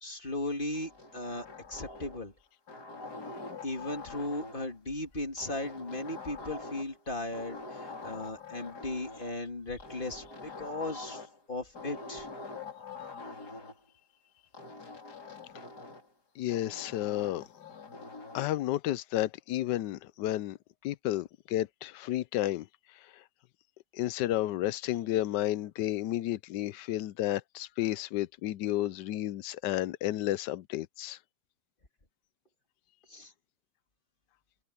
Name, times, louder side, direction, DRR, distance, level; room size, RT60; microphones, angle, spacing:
voice 1, 0.0-2.3 3.6-11.2 11.5-12.3 33.1-33.3, left 2 dB, 25° left, 2.8 m, -37 dB
sound 1, 0.7-2.3 2.7-4.7 5.4-7.0 7.3-9.3 9.8-11.4 11.7-13.8 14.5-16.1 16.5-18.5, left 3 dB, 60° left, 4.6 m, -45 dB
voice 2, 16.4-17.4 18.3-20.6 20.8-22.7 23.1-23.2 23.9-31.2, left 14 dB, 75° left, 1.2 m, -32 dB
omnidirectional pair, 2.0 m